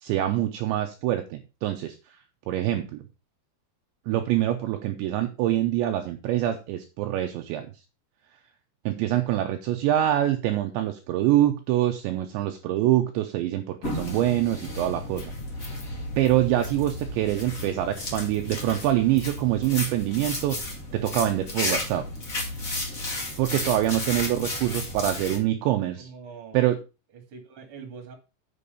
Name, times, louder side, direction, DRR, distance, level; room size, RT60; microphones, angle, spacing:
voice 1, 0.0-2.0 2.5-3.0 4.1-7.7 8.9-15.3 16.2-22.1 23.4-26.1 26.5-26.8, right 13 dB, 80° right, 5 dB, 2.8 m, -25 dB
sound 1, 13.8-25.4, left 2 dB, 40° left, 1.2 m, -33 dB
voice 2, 24.1-24.8 25.9-26.6 27.1-28.1, right 5 dB, 35° right, 4 dB, 2.4 m, -45 dB
8.4 x 6.3 x 5.4 m, 0.29 s
omnidirectional pair, 5.7 m